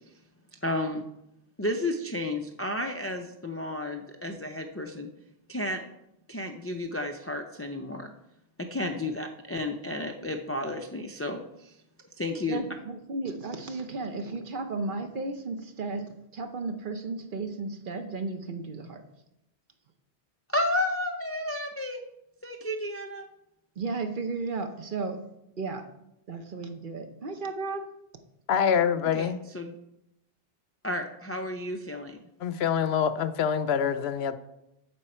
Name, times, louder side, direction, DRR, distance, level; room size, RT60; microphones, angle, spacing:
voice 1, 0.6-1.0 1.6-5.1 5.5-5.8 6.3-8.1 8.6-11.7 12.2-12.6 20.5-22.0 22.4-23.2 29.1-29.8 30.8-32.2, left 1 dB, 25° left, 3 dB, 0.3 m, -32 dB
voice 2, 12.4-19.0 23.8-25.2 25.6-25.9 26.3-27.9, right 3 dB, 55° right, 6 dB, 1.0 m, -34 dB
voice 3, 28.5-29.4 32.4-34.4, left 7 dB, 75° left, 13 dB, 0.8 m, -25 dB
8.7 x 7.1 x 4.3 m, 0.84 s
omnidirectional pair, 1.1 m